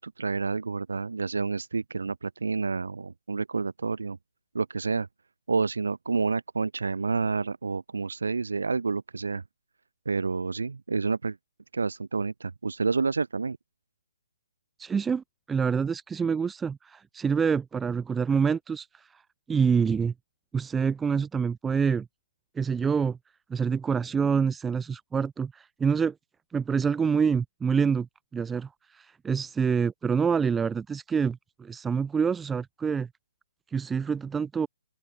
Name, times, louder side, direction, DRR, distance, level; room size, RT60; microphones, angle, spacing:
voice 1, 0.0-4.2 4.5-5.1 5.5-9.4 10.1-11.4 11.7-13.6, right 4 dB, 85° right, 3.9 m, -29 dB
voice 2, 14.8-19.2 19.5-20.1 20.5-22.1 22.6-23.2 23.5-26.1 26.5-28.1 28.3-33.1 33.7-34.7, right 6 dB, 10° right, 2.2 m, -26 dB
open air
hypercardioid pair, 150°, 0 cm